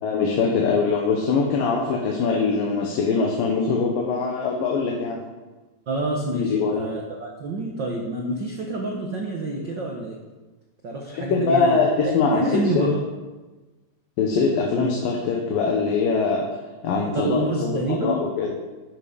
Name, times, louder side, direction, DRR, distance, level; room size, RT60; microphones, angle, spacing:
voice 1, 0.0-5.2 6.3-6.8 11.2-12.9 14.2-16.5 16.8-18.5, left 4 dB, 85° left, 0 dB, 2.9 m, -22 dB
voice 2, 5.9-10.2 10.8-13.0 17.1-18.2, right 2 dB, 70° right, 0 dB, 1.0 m, -27 dB
11.5 x 8.5 x 5.1 m, 1.2 s
omnidirectional pair, 3.9 m